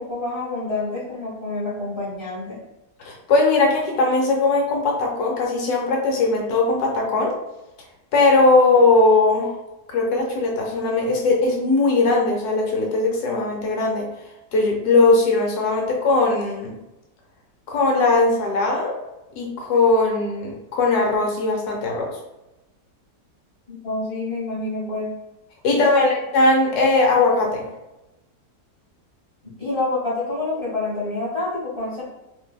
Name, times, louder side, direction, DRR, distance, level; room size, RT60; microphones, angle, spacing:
voice 1, 0.0-2.6 23.7-25.1 25.7-26.1 29.6-32.0, left 2 dB, 30° left, -7 dB, 0.6 m, -27 dB
voice 2, 3.0-7.3 8.1-9.5 9.9-14.1 14.5-16.8 17.7-19.0 19.4-22.2 25.6-27.7, left 3 dB, 70° left, -1 dB, 1.1 m, -19 dB
2.6 x 2.6 x 2.3 m, 0.98 s
omnidirectional pair, 1.9 m